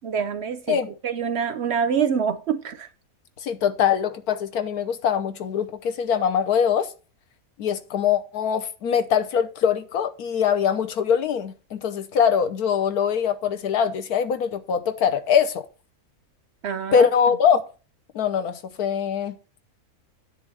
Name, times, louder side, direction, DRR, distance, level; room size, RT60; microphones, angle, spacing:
voice 1, 0.0-2.9 16.6-17.1, right 7 dB, 60° right, 0.7 m, -25 dB
voice 2, 3.4-6.9 7.6-15.6 16.9-17.6 18.1-19.4, left 7 dB, 90° left, 1.4 m, -22 dB
9.9 x 3.4 x 6.9 m
omnidirectional pair, 1.6 m